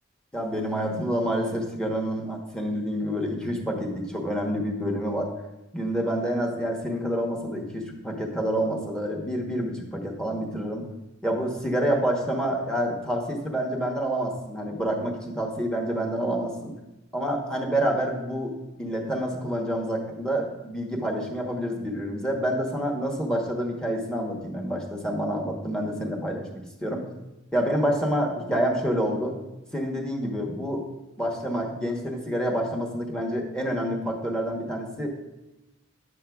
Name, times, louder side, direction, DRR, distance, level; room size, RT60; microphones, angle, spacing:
voice 1, 0.3-5.3 5.7-10.9 11.2-16.7 17.1-27.1 27.5-29.3 29.7-30.8 31.2-35.2, equal, 5° left, 1 dB, 1.0 m, -28 dB
10.0 x 7.4 x 2.3 m, 1.0 s
head